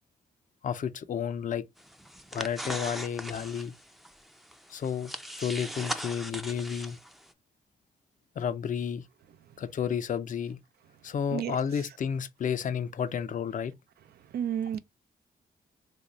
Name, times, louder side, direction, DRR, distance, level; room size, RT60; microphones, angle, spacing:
voice 1, 0.6-1.6 2.3-3.7 4.7-5.1 5.4-7.0 8.4-9.0 9.6-10.6 11.0-13.7, left 8 dB, 50° left, 0.5 m, -31 dB
sound 1, 1.8-7.3, equal, ahead, 0.4 m, -40 dB
voice 2, 14.3-14.8, right 9 dB, 75° right, 0.4 m, -30 dB
3.1 x 2.7 x 2.9 m
cardioid pair, 70°, 17 cm